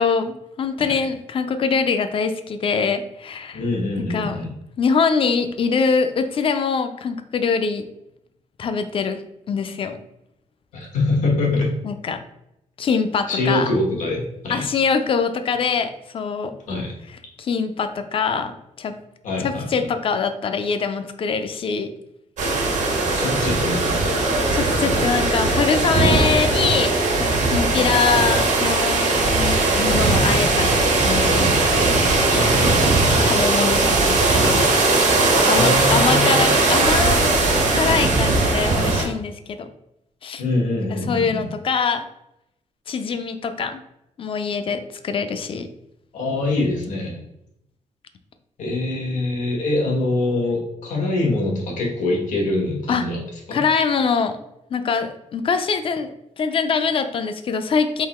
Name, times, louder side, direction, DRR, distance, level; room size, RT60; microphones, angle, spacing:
voice 1, 0.0-3.6 4.1-4.4 4.8-7.9 8.6-10.0 11.8-12.2 12.8-13.7 14.5-16.5 17.4-19.0 19.4-21.9 24.5-26.9 27.2-31.6 33.3-34.7 35.3-37.3 37.7-39.7 40.2-40.4 40.9-42.1 42.9-43.8 44.2-45.7 52.9-53.0 53.5-54.4 54.7-56.1 56.4-58.1, left 5 dB, 45° left, 9 dB, 0.4 m, -23 dB
voice 2, 3.5-4.5 10.7-11.7 13.3-14.7 16.7-16.9 19.2-19.6 23.2-24.3 27.7-27.9 32.3-33.2 35.4-36.5 40.4-41.5 46.1-47.2 48.6-53.2 53.5-53.6, left 2 dB, 85° left, -1 dB, 1.4 m, -24 dB
sound 1, 22.4-39.0, right 2 dB, 75° right, 1.1 m, -19 dB
3.8 x 2.9 x 4.3 m, 0.83 s
wide cardioid pair, 140°, 13 cm